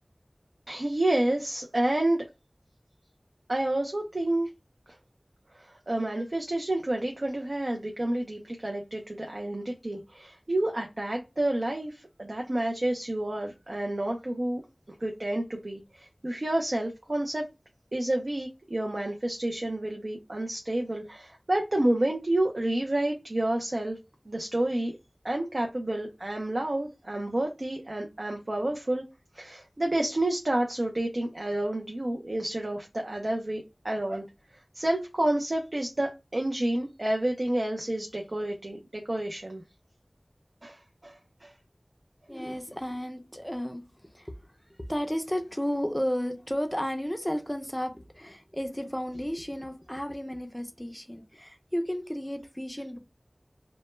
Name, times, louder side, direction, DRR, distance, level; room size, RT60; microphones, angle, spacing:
voice 1, 0.7-2.3 3.5-4.5 5.6-14.6 15.0-17.4 17.9-24.0 24.3-25.0 25.2-29.0 29.3-34.2 34.7-39.6 40.6-41.5, right 1 dB, 65° right, 0.4 m, -29 dB
voice 2, 42.3-44.3 44.9-53.0, equal, 10° left, 0.4 m, -33 dB
2.1 x 2.1 x 3.0 m
wide cardioid pair, 45°, 0 cm